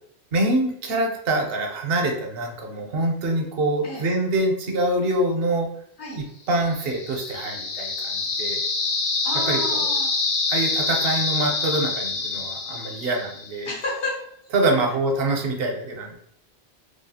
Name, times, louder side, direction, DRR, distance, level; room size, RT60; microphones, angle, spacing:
voice 1, 0.3-5.7 6.5-8.6 9.5-9.9 10.5-13.7 14.5-16.2, right 2 dB, 65° right, 2 dB, 0.8 m, -25 dB
sound 1, 6.7-13.6, left 3 dB, 55° left, 0.7 m, -26 dB
voice 2, 9.2-10.1 13.6-14.2, left 2 dB, 85° left, -3 dB, 1.3 m, -30 dB
3.1 x 2.3 x 2.7 m, 0.70 s
omnidirectional pair, 1.1 m